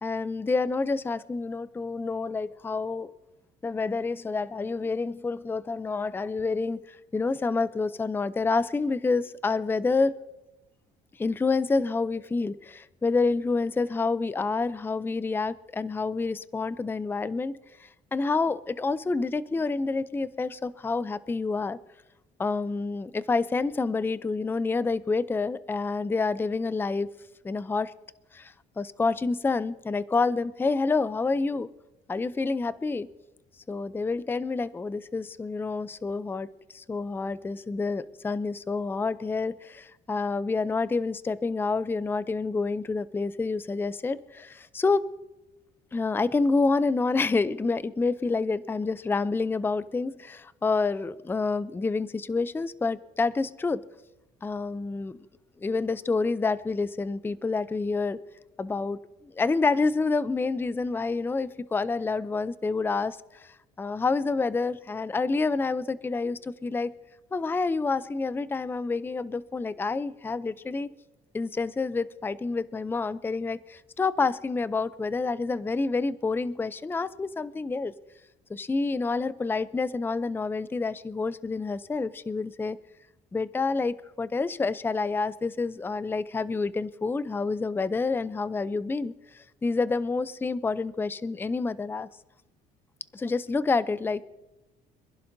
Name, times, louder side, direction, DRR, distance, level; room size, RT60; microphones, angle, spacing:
voice 1, 0.0-3.1 3.6-10.1 11.2-17.5 17.8-21.8 22.4-27.1 27.4-27.9 28.3-31.7 32.1-33.1 33.7-36.5 36.7-45.0 45.9-53.8 54.4-55.2 55.6-58.2 58.6-59.0 59.3-66.9 67.3-70.9 71.3-77.9 78.5-82.8 83.3-92.1 93.1-94.2, left 4 dB, 10° left, 16 dB, 0.5 m, -28 dB
26.0 x 11.0 x 2.7 m, 1.0 s
cardioid pair, 110°, 17 cm